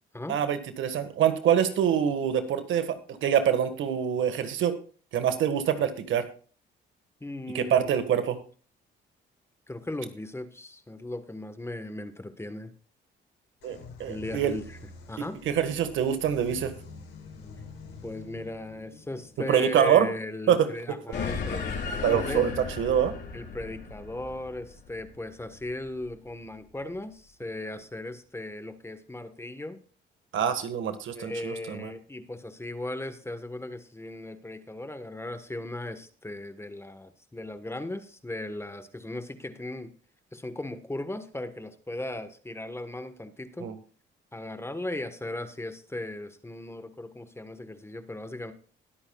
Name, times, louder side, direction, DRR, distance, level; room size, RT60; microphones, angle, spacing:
voice 1, 0.3-4.8 5.1-6.3 7.5-8.4 13.6-14.5 15.4-16.7 19.5-20.1 20.5-21.0 22.0-22.5 22.8-23.1 30.3-31.9 43.6-43.7, right 9 dB, 75° right, 9 dB, 1.6 m, -25 dB
voice 2, 7.2-8.0 9.7-12.7 14.1-14.8 15.1-15.4 18.0-22.5 23.3-29.8 31.1-39.9 40.3-43.7 44.3-48.5, left 1 dB, 10° left, 9 dB, 1.2 m, -37 dB
sound 1, 13.6-21.2, left 4 dB, 85° left, 3.8 m, -47 dB
sound 2, 21.1-25.9, left 5 dB, 60° left, 4.9 m, -35 dB
20.5 x 8.7 x 2.3 m, 0.41 s
cardioid pair, 90°, 20 cm